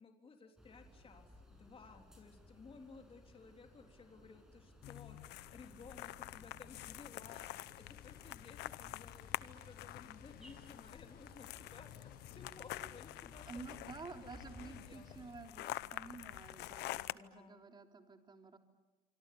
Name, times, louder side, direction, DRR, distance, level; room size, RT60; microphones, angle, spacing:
voice 1, 0.0-7.4 7.8-15.2 17.0-17.6, left 4 dB, 35° left, 3 dB, 3.7 m, -57 dB
sound 1, 0.6-15.3, left 1 dB, 5° right, 6.8 m, -61 dB
sound 2, 4.8-17.1, left 16 dB, 85° left, 0.8 m, -47 dB
sound 3, 6.7-15.4, left 11 dB, 65° left, 1.1 m, -61 dB
voice 2, 13.5-18.6, right 4 dB, 25° right, 4 dB, 3.5 m, -51 dB
26.5 x 25.5 x 8.6 m, 1.2 s
cardioid pair, 110°, 17 cm